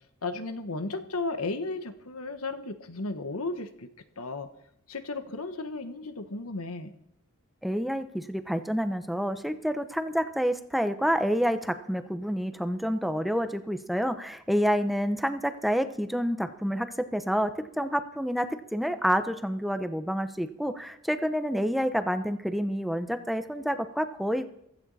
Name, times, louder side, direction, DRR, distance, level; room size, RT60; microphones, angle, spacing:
voice 1, 0.2-3.9 4.2-4.5 4.9-6.9, left 3 dB, 75° left, 9 dB, 1.4 m, -34 dB
voice 2, 7.6-18.5 18.7-24.5, equal, ahead, 9 dB, 0.8 m, -28 dB
15.5 x 14.5 x 4.2 m, 0.75 s
head